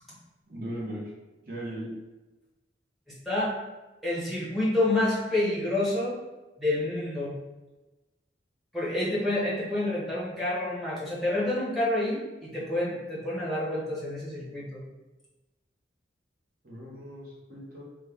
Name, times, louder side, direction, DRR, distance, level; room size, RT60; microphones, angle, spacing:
voice 1, 0.5-1.0 1.5-1.9 16.6-17.8, right 1 dB, 50° right, -4 dB, 0.9 m, -38 dB
voice 2, 4.0-6.2 6.6-7.3 8.7-14.8, left 1 dB, ahead, -8 dB, 0.8 m, -28 dB
3.1 x 2.2 x 3.4 m, 1.1 s
head